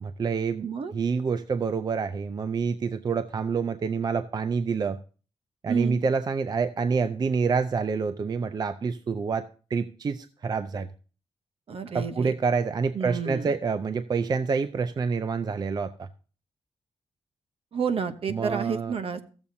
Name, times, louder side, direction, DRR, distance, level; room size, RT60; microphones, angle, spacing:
voice 1, 0.0-0.7 0.9-5.0 5.6-10.9 11.9-16.1 18.3-19.0, right 5 dB, 40° right, 12 dB, 0.4 m, -27 dB
voice 2, 0.6-0.9 5.7-6.0 11.7-12.3 12.9-13.5 17.7-19.2, right 6 dB, 60° right, 10 dB, 0.9 m, -30 dB
16.0 x 7.1 x 2.7 m, 0.37 s
wide cardioid pair, 120°, 11 cm